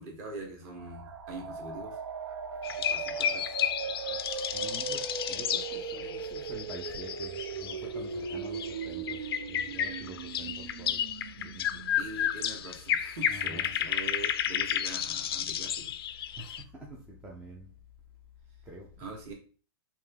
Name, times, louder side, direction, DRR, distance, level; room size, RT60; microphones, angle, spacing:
voice 1, 0.0-2.0 2.8-3.6 12.0-15.9 19.0-19.3, right 3 dB, 35° right, 1.3 m, -43 dB
sound 1, 0.7-12.3, right 6 dB, 85° right, 0.5 m, -39 dB
sound 2, 2.6-7.9 8.2-16.6, left 9 dB, 75° left, 0.4 m, -32 dB
voice 2, 4.5-9.2 9.5-11.1 11.4-11.9 13.3-13.7 16.4-17.7 18.7-19.0, right 1 dB, 5° right, 0.4 m, -46 dB
3.4 x 2.8 x 3.5 m
hypercardioid pair, 160°, 13 cm